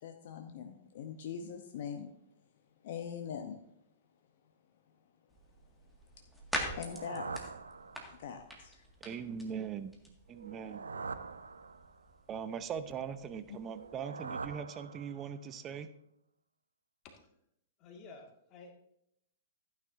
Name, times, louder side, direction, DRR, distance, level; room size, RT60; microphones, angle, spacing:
voice 1, 0.0-2.1 2.8-3.6 6.2-6.3 6.7-7.3 8.2-8.8 13.5-13.6, left 7 dB, 50° left, 0.9 m, -42 dB
sound 1, 5.3-14.0, equal, ahead, 2.0 m, -45 dB
sound 2, 6.6-8.4 10.3-12.2 13.6-15.5, right 4 dB, 75° right, 0.5 m, -44 dB
voice 2, 9.0-9.9 10.3-10.8 12.3-15.9, right 7 dB, 25° right, 0.7 m, -40 dB
voice 3, 17.8-18.7, left 3 dB, 30° left, 2.0 m, -52 dB
15.0 x 9.5 x 2.7 m
figure-of-eight pair, 105°, 0 cm